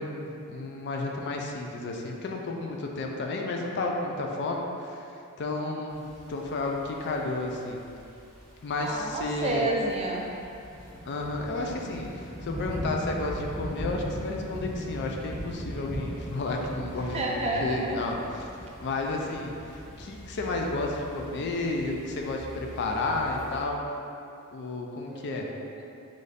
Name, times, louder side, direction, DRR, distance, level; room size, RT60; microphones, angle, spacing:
voice 1, 0.0-5.1 5.4-6.0 6.3-7.8 8.6-9.6 11.1-18.5 18.8-23.8 24.5-25.5, left 2 dB, 50° left, 1 dB, 0.4 m, -32 dB
sound 1, 5.9-23.6, equal, ahead, 0.9 m, -40 dB
voice 2, 8.8-10.2 17.1-18.0 25.1-25.8, right 2 dB, 30° right, -2 dB, 0.4 m, -30 dB
3.1 x 2.6 x 3.9 m, 2.6 s
head